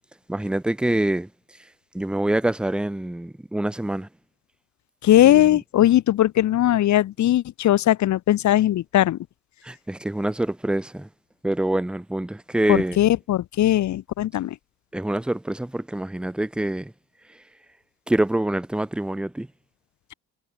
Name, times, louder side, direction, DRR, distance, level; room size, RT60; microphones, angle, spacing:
voice 1, 0.3-1.3 1.9-4.1 9.6-11.1 11.4-13.0 14.9-16.9 18.1-19.5, right 1 dB, 5° right, 0.4 m, -25 dB
voice 2, 5.0-9.2 12.7-14.6, left 13 dB, 70° left, 1.1 m, -19 dB
cardioid pair, 90°, 30 cm